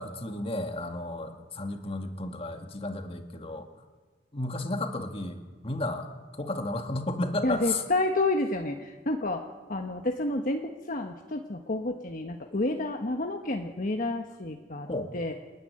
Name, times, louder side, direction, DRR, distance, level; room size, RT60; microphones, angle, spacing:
voice 1, 0.0-3.7 4.3-6.1 6.4-7.8 14.9-15.1, left 2 dB, 35° left, 6 dB, 2.0 m, -33 dB
voice 2, 7.4-9.4 9.7-14.9 15.1-15.3, left 2 dB, 50° left, 3 dB, 1.3 m, -29 dB
28.5 x 10.5 x 9.7 m, 1.3 s
head